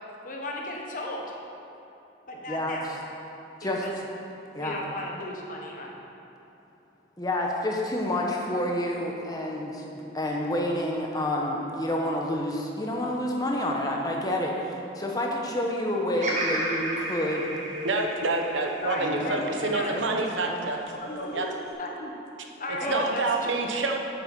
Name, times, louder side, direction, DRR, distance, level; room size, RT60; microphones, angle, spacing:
voice 1, 0.2-1.3 2.3-2.9 3.6-3.9 4.6-6.0 18.8-20.0 21.0-22.1 22.6-23.5, left 1 dB, 45° left, -1 dB, 1.3 m, -35 dB
voice 2, 7.2-17.5 19.0-19.3 19.6-20.2 20.5-20.7 22.8-23.0, left 1 dB, 20° left, -1 dB, 1.1 m, -29 dB
Bird vocalization bird call bird song, 16.2-20.4 21.0-21.7, right 1 dB, 40° right, 1.3 m, -33 dB
voice 3, 17.8-20.8 21.3-21.5 22.9-24.0, right 3 dB, 85° right, 2 dB, 1.0 m, -27 dB
9.1 x 6.8 x 6.0 m, 2.9 s
head